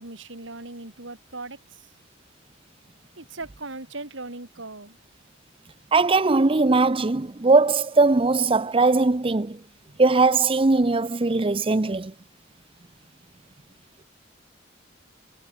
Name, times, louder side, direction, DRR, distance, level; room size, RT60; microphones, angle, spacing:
voice 1, 0.0-1.9 3.2-5.0, right 2 dB, 85° right, 3.6 m, -39 dB
voice 2, 5.9-9.6 10.0-12.1, right 3 dB, 30° right, 0.7 m, -20 dB
head